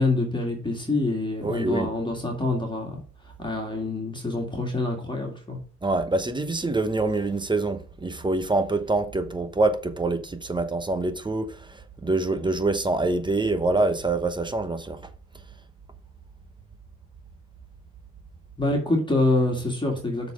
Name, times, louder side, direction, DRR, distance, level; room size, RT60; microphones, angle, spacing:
voice 1, 0.0-3.0 3.4-5.6 18.6-20.3, left 2 dB, 15° left, 2.1 m, -26 dB
voice 2, 1.4-1.9 5.8-11.5 12.0-15.0, right 2 dB, 15° right, 0.9 m, -25 dB
6.8 x 4.2 x 5.0 m
cardioid pair, 90°, 30 cm